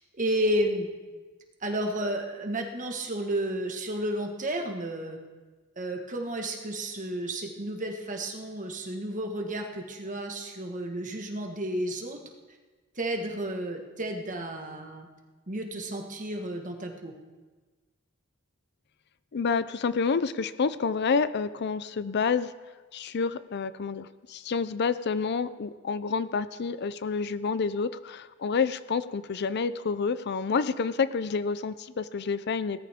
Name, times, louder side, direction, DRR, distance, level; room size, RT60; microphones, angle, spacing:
voice 1, 0.2-0.9 1.6-5.2 5.8-12.2 12.9-15.1 15.5-17.1, right 1 dB, 40° right, 3 dB, 1.6 m, -32 dB
voice 2, 19.3-22.5 22.9-32.8, left 5 dB, 50° left, 15 dB, 0.5 m, -28 dB
18.5 x 13.5 x 3.6 m, 1.3 s
head